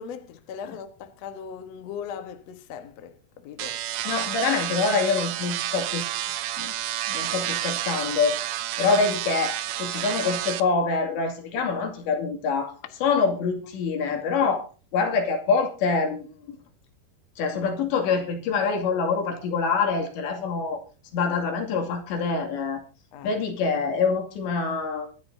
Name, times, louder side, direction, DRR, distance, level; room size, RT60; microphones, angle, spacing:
voice 1, 0.0-3.8 23.1-23.3, left 7 dB, 65° left, 1.6 m, -39 dB
sound 1, 3.6-10.6, right 13 dB, 80° right, 1.9 m, -30 dB
voice 2, 4.1-6.1 6.6-6.7 7.1-8.4 8.8-12.7 13.0-14.6 14.9-16.6 17.4-20.8 21.1-22.8 23.2-25.1, left 4 dB, 80° left, 4.7 m, -25 dB
23.5 x 11.0 x 2.7 m
omnidirectional pair, 5.0 m